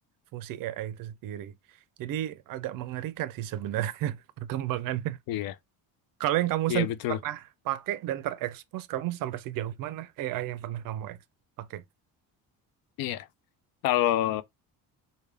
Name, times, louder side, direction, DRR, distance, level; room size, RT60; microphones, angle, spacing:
voice 1, 0.3-1.5 2.0-5.2 6.2-11.2 11.6-11.8, right 13 dB, 60° right, 0.5 m, -32 dB
voice 2, 6.7-7.2 13.0-13.3 13.8-14.4, left 12 dB, 65° left, 0.5 m, -27 dB
3.4 x 2.2 x 3.3 m
cardioid pair, 165°, 38 cm